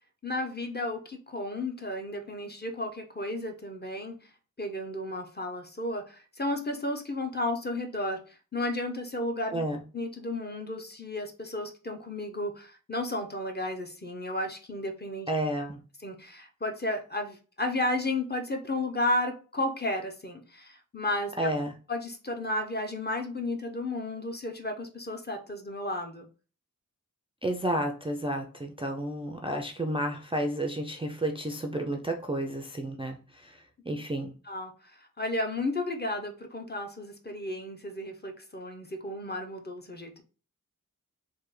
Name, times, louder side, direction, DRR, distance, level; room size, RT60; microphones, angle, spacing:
voice 1, 0.2-4.2 4.6-9.6 9.9-15.3 16.0-21.5 21.9-26.3 34.5-34.7 35.2-40.2, left 1 dB, 30° left, 4 dB, 0.6 m, -33 dB
voice 2, 15.3-15.8 21.4-21.7 27.4-33.6 33.9-34.3, right 1 dB, 15° right, 3 dB, 0.3 m, -31 dB
3.3 x 2.1 x 3.1 m, 0.36 s
wide cardioid pair, 50°, 34 cm